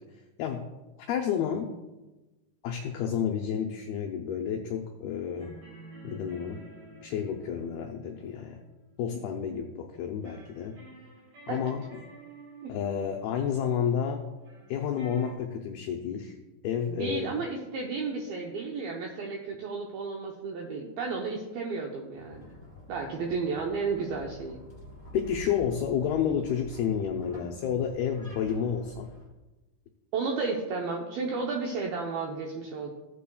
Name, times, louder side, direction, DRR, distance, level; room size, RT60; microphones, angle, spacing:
voice 1, 0.1-0.7 1.1-1.7 2.6-5.5 6.0-6.6 7.0-8.6 9.0-10.8 11.5-11.8 12.7-14.2 14.7-16.4 16.6-17.3 25.1-29.1, left 8 dB, 85° left, 2 dB, 2.2 m, -30 dB
sound 1, 5.4-9.5 10.2-15.3, right 2 dB, 50° right, 4.1 m, -51 dB
voice 2, 16.9-22.5 22.9-24.6 30.1-32.9, right 4 dB, 80° right, 0 dB, 2.1 m, -33 dB
sound 2, 22.1-29.3, equal, 10° left, 2.9 m, -47 dB
16.0 x 8.6 x 2.3 m, 1.1 s
omnidirectional pair, 5.4 m